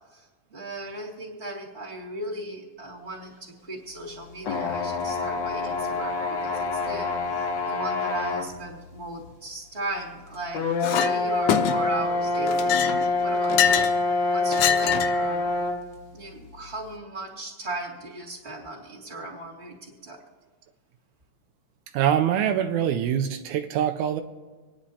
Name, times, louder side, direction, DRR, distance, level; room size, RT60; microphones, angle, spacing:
voice 1, 0.1-10.6 10.9-12.7 13.2-13.9 14.3-15.5 16.1-20.2, right 2 dB, 25° right, -4 dB, 2.5 m, -37 dB
sound 1, 4.4-8.5 9.2-9.3 10.5-15.8, left 3 dB, 65° left, 1.1 m, -26 dB
Chink clink, 10.8-11.1 11.5-12.0 12.5-14.0 14.5-15.2, left 9 dB, 80° left, 2.0 m, -24 dB
voice 2, 21.9-24.2, right 9 dB, 90° right, 6 dB, 2.0 m, -24 dB
27.0 x 10.0 x 2.8 m, 1.3 s
omnidirectional pair, 3.4 m